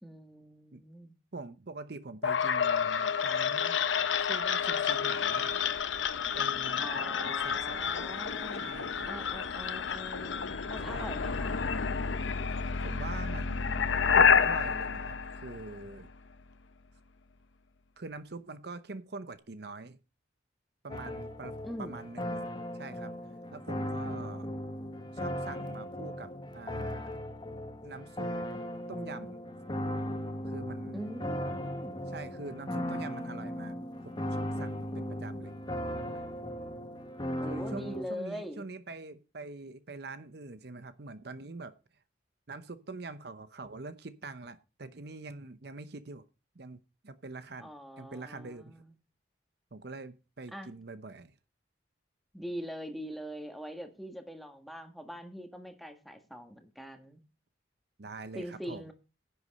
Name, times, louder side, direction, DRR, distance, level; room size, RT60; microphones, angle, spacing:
voice 1, 0.0-1.1 6.8-8.8 9.0-11.6 21.6-22.0 30.9-32.1 37.4-38.7 47.6-48.9 50.5-50.7 52.3-57.2 58.3-58.9, equal, ahead, 1.6 m, -43 dB
voice 2, 1.3-3.8 4.2-5.6 6.3-8.0 8.5-9.1 10.9-11.2 12.8-14.1 14.4-16.1 18.0-20.0 20.8-22.5 22.7-23.1 23.5-24.5 25.1-27.2 27.8-28.3 28.9-29.4 30.4-31.2 32.1-35.5 36.1-36.2 37.4-42.0 42.5-46.2 46.5-47.7 48.0-48.8 49.7-51.4 58.0-58.9, right 3 dB, 60° right, 0.8 m, -44 dB
sound 1, 2.2-16.1, left 6 dB, 85° left, 0.8 m, -29 dB
sound 2, 20.9-38.0, equal, 25° left, 1.4 m, -37 dB
10.5 x 8.2 x 5.3 m
head